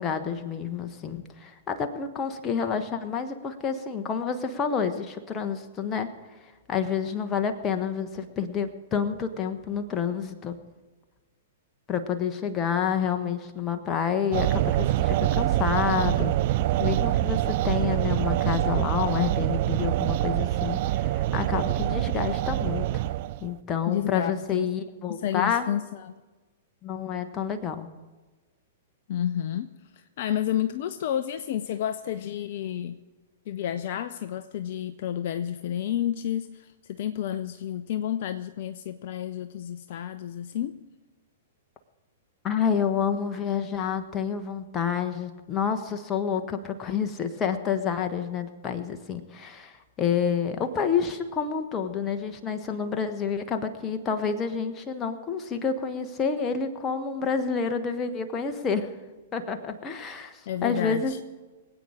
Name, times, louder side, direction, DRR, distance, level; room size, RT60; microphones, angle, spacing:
voice 1, 0.0-6.1 6.7-10.6 11.9-16.3 16.8-23.0 23.4-25.7 26.8-27.9 42.4-58.9 59.3-61.1, left 7 dB, 25° left, 1.3 m, -29 dB
sound 1, 14.3-23.5, right 14 dB, 45° right, 0.4 m, -25 dB
voice 2, 23.9-24.7 25.1-26.2 29.1-33.0 33.5-40.8 60.5-61.2, left 10 dB, 50° left, 0.5 m, -30 dB
24.5 x 8.7 x 5.0 m
figure-of-eight pair, 105°, 0 cm